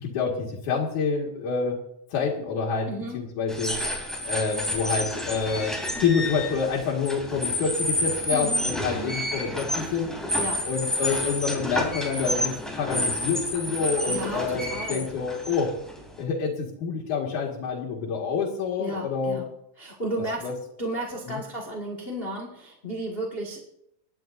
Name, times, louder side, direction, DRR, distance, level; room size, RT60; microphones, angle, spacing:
voice 1, 0.0-1.8 2.1-2.9 3.1-3.8 4.2-10.2 10.7-15.7 16.2-19.4 20.4-20.5 21.2-21.4, left 5 dB, 85° left, -2 dB, 3.3 m, -27 dB
voice 2, 2.9-3.2 8.3-9.2 10.4-10.7 14.1-15.1 18.8-19.4 19.8-20.5 20.8-23.6, right 1 dB, 25° left, 0 dB, 1.4 m, -33 dB
sound 1, 3.5-16.2, left 1 dB, ahead, 2.6 m, -30 dB
26.5 x 11.0 x 2.6 m, 0.76 s
omnidirectional pair, 3.4 m